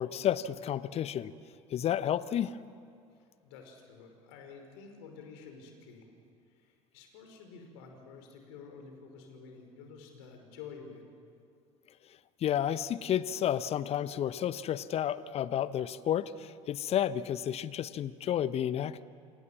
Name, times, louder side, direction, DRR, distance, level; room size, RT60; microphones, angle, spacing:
voice 1, 0.0-1.3 1.7-2.6 12.4-19.0, left 10 dB, 40° left, 16 dB, 1.0 m, -31 dB
voice 2, 3.4-6.1 6.5-11.0, left 5 dB, 60° left, 4 dB, 5.6 m, -50 dB
28.0 x 28.0 x 7.4 m, 2.4 s
figure-of-eight pair, 65°, 17 cm